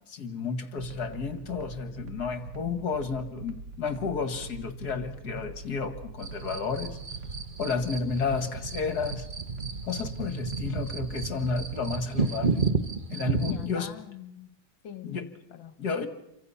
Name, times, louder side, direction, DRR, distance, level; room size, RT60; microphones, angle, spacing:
voice 1, 0.1-7.0 7.6-9.3 9.8-12.6 13.1-13.9 15.0-15.3 15.8-16.1, left 5 dB, 50° left, 9 dB, 2.2 m, -32 dB
sound 1, 0.8-12.0, right 4 dB, 55° right, 1.8 m, -43 dB
sound 2, 6.2-13.7, right 4 dB, 30° right, 1.1 m, -32 dB
voice 2, 13.4-14.6 14.8-15.8, left 9 dB, 65° left, 12 dB, 2.0 m, -44 dB
28.5 x 24.5 x 5.8 m, 0.81 s
omnidirectional pair, 2.3 m